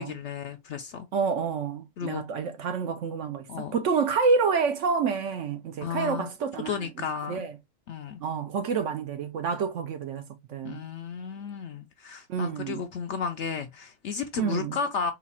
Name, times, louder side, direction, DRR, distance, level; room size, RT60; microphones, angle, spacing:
voice 1, 0.0-1.1 2.0-2.2 3.5-3.7 5.8-6.3 6.7-7.4 7.9-8.2 10.6-15.1, left 6 dB, 65° left, 0.7 m, -33 dB
voice 2, 1.1-6.9 7.3-7.5 8.2-10.8 12.3-12.8 14.4-14.8, right 5 dB, 70° right, 0.8 m, -28 dB
4.0 x 2.4 x 4.1 m
omnidirectional pair, 1.6 m